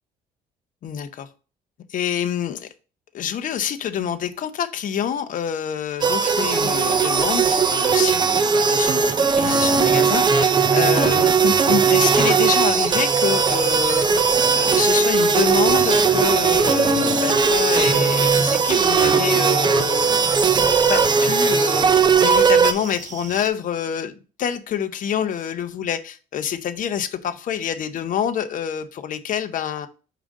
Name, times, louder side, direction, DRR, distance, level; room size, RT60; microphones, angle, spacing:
voice 1, 0.8-1.3 1.9-2.7 3.1-14.1 14.5-20.3 20.9-21.9 22.2-29.9, left 9 dB, 50° left, 9 dB, 0.7 m, -27 dB
sound 1, 6.0-22.7, right 5 dB, 25° right, 0.6 m, -18 dB
sound 2, 11.8-23.5, right 7 dB, 45° right, 0.9 m, -38 dB
5.0 x 3.8 x 5.0 m, 0.35 s
cardioid pair, 110°, 17 cm